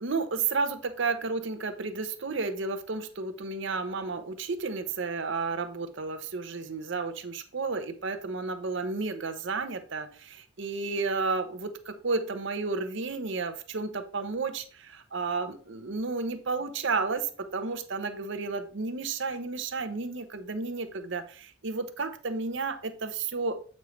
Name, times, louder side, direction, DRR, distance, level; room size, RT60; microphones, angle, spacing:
voice 1, 0.0-23.6, right 4 dB, 60° right, 9 dB, 0.7 m, -32 dB
8.2 x 5.3 x 3.2 m, 0.42 s
head